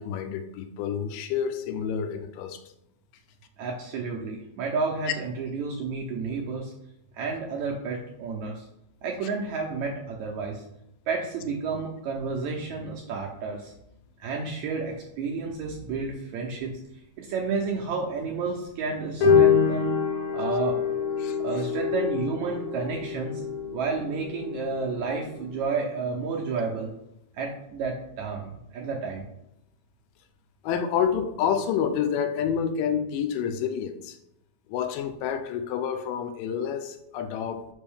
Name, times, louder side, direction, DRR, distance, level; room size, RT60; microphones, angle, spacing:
voice 1, 0.0-2.6 21.2-21.4 30.6-34.2 34.7-37.6, left 8 dB, 85° left, 8 dB, 2.2 m, -28 dB
voice 2, 3.6-6.7 7.1-8.7 9.0-10.6 11.1-13.7 14.2-16.8 17.2-20.0 20.3-20.8 21.4-23.4 23.7-26.9 27.3-29.3, right 4 dB, 80° right, -1 dB, 1.7 m, -31 dB
sound 1, 19.2-25.7, left 6 dB, 65° left, 1.4 m, -26 dB
5.3 x 5.2 x 3.5 m, 0.82 s
omnidirectional pair, 3.9 m